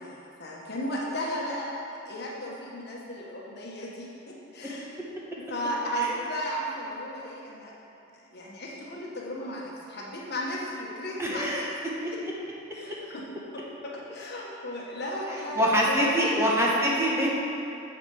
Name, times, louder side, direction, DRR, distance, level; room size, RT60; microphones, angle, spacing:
voice 1, 0.0-1.8 2.1-4.9 5.5-7.7 8.3-11.7 12.1-12.2 12.7-13.2 13.5-16.6, equal, 55° left, -3 dB, 1.4 m, -35 dB
voice 2, 11.2-11.7 15.6-17.4, equal, 15° right, -5 dB, 1.0 m, -24 dB
7.4 x 7.3 x 4.9 m, 2.7 s
head